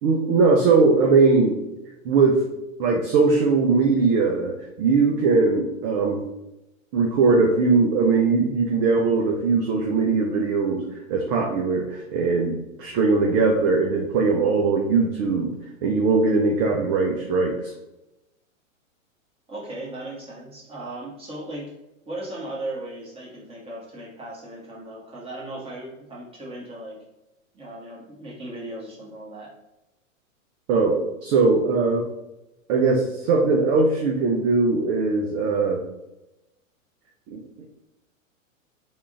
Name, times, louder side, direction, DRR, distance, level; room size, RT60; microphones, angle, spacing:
voice 1, 0.0-1.6 2.0-2.4 2.8-6.2 6.9-10.8 11.1-15.5 15.8-17.7 30.7-32.0 32.7-35.8 37.3-37.4, right 4 dB, 30° right, 1 dB, 0.5 m, -20 dB
voice 2, 19.5-21.7 22.1-27.0 27.5-29.5, right 1 dB, 15° right, -5 dB, 1.2 m, -37 dB
3.6 x 2.4 x 3.6 m, 0.94 s
hypercardioid pair, 115°, 41 cm